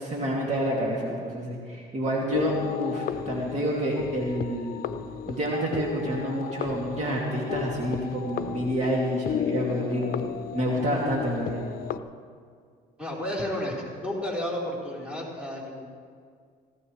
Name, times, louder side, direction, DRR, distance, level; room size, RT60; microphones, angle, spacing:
voice 1, 0.0-2.5 2.8-4.8 5.3-10.2 10.5-11.6, equal, 45° right, -3 dB, 2.4 m, -28 dB
sound 1, 2.3-12.0, left 9 dB, 60° left, 0.6 m, -34 dB
voice 2, 13.0-15.9, left 1 dB, 5° right, -5 dB, 3.9 m, -32 dB
18.0 x 15.5 x 3.2 m, 2.1 s
cardioid pair, 110°, 17 cm